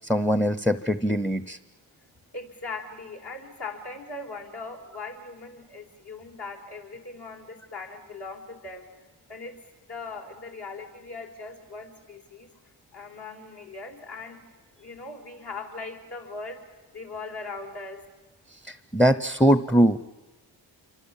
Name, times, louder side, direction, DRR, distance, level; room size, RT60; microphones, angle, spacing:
voice 1, 0.0-1.6 18.6-20.1, equal, 5° left, 14 dB, 0.7 m, -22 dB
voice 2, 2.3-8.9 9.3-9.6 9.9-12.5 12.9-14.4 14.8-16.6 16.9-18.0, left 3 dB, 60° left, 1 dB, 4.5 m, -39 dB
26.5 x 24.0 x 7.4 m, 1.2 s
cardioid pair, 75°, 45 cm